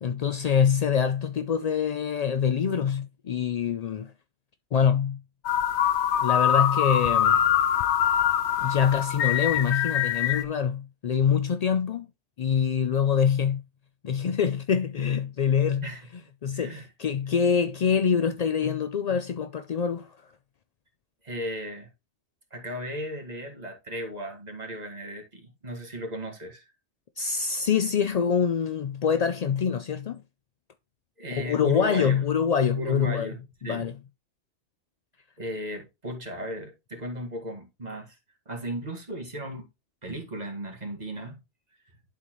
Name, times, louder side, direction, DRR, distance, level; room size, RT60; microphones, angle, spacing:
voice 1, 0.0-4.1 4.7-5.2 6.2-7.4 8.6-12.1 12.4-13.6 14.0-15.9 16.4-20.2 27.2-30.2 31.3-33.3 33.6-34.0, left 7 dB, 60° left, 0.4 m, -25 dB
sound 1, 5.4-10.4, left 9 dB, 75° left, 1.0 m, -24 dB
voice 2, 16.5-16.9 21.2-21.9 22.5-26.7 31.2-32.2 32.8-33.9 35.4-38.2 38.5-39.7 40.0-41.4, equal, 35° right, 2.0 m, -36 dB
11.5 x 4.0 x 3.0 m
omnidirectional pair, 1.2 m